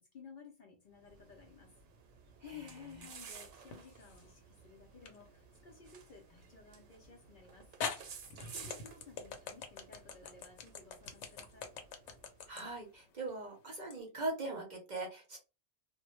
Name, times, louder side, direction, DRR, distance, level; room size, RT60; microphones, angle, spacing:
voice 1, 0.0-1.7 2.4-7.7 8.5-11.7, left 5 dB, 60° left, 0.6 m, -55 dB
sound 1, 0.9-12.7, right 6 dB, 85° right, 0.9 m, -55 dB
voice 2, 2.4-2.7 12.5-15.4, right 2 dB, 50° right, 0.6 m, -41 dB
sound 2, 3.7-4.3 5.1-5.2 7.0-7.1 7.8-14.0, left 6 dB, 90° left, 0.9 m, -43 dB
2.1 x 2.0 x 2.9 m
omnidirectional pair, 1.2 m